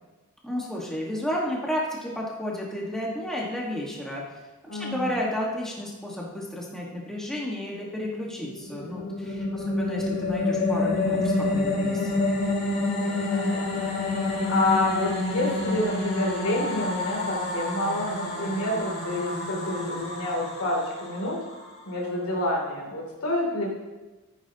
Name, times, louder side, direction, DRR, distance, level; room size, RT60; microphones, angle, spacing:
voice 1, 0.4-4.2 4.8-12.2, left 1 dB, ahead, -4 dB, 1.5 m, -32 dB
voice 2, 4.7-5.2 9.5-9.9 12.7-21.4 21.9-23.7, left 1 dB, 85° left, -1 dB, 2.9 m, -29 dB
sound 1, 8.4-21.8, left 2 dB, 50° left, 4.0 m, -28 dB
14.5 x 9.0 x 2.9 m, 1.2 s
head